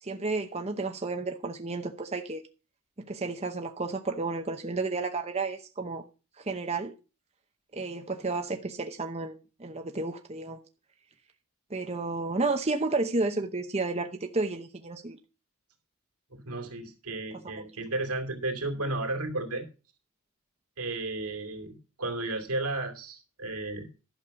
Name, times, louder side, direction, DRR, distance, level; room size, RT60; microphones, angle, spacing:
voice 1, 0.0-2.4 3.0-6.0 6.4-6.9 7.7-10.6 11.7-15.2 17.6-17.7, right 3 dB, 30° right, 0.8 m, -32 dB
voice 2, 16.3-19.7 20.8-23.9, right 2 dB, 85° right, 2.7 m, -33 dB
11.5 x 6.6 x 5.8 m
head